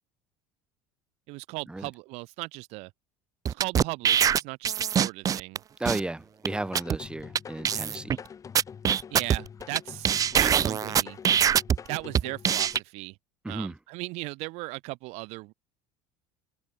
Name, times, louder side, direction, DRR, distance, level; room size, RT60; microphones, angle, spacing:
voice 1, 1.3-2.9 3.5-5.6 9.1-11.2 11.9-13.2 13.5-15.5, right 24 dB, 65° right, 4.5 m, -37 dB
sound 1, 3.5-5.6 5.9-6.0 6.5-6.6 6.8-7.0 7.4-7.5 7.6-8.2 8.6-9.8 10.0-11.8 12.1-12.8, right 8 dB, 30° right, 0.7 m, -23 dB
voice 2, 5.8-8.2 13.4-13.8, right 2 dB, 10° right, 4.7 m, -34 dB
sound 2, 6.4-12.8, left 7 dB, 30° left, 3.0 m, -44 dB
open air
supercardioid pair, 120°, 12 cm